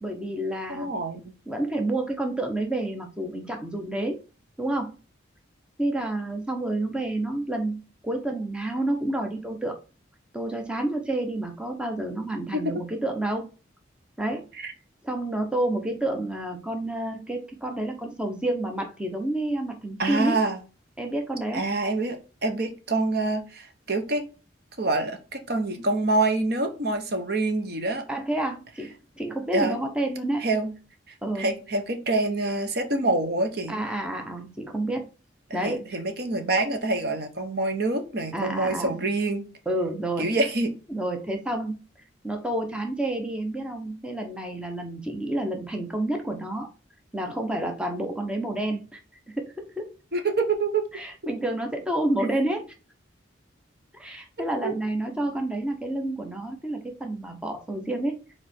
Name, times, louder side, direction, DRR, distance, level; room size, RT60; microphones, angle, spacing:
voice 1, 0.0-0.9 1.5-4.2 4.6-4.9 5.8-9.8 10.3-13.5 14.2-14.4 15.0-20.4 21.0-21.6 28.1-30.4 31.2-31.5 33.7-35.0 35.5-35.8 38.3-39.0 39.7-40.3 40.9-41.8 42.2-46.7 47.1-49.0 49.4-49.9 50.9-52.7 53.9-58.2, right 1 dB, 5° right, 3 dB, 0.8 m, -29 dB
voice 2, 0.7-1.3 12.5-12.7 14.6-14.7 20.0-20.6 21.5-24.2 24.8-28.0 29.5-29.8 30.4-30.8 31.1-33.7 35.6-39.4 40.2-40.7 50.1-50.8 54.4-54.8, right 2 dB, 55° right, 6 dB, 1.0 m, -26 dB
4.9 x 4.5 x 4.3 m, 0.33 s
head